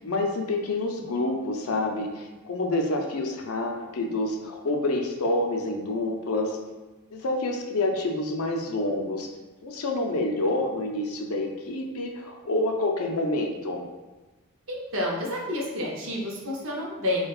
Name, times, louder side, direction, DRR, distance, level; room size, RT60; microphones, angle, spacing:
voice 1, 0.0-6.6 7.1-9.3 9.6-13.8, left 2 dB, 75° left, 2 dB, 0.5 m, -28 dB
voice 2, 14.7-17.3, left 1 dB, 60° right, -2 dB, 0.8 m, -29 dB
4.7 x 2.2 x 2.3 m, 1.2 s
head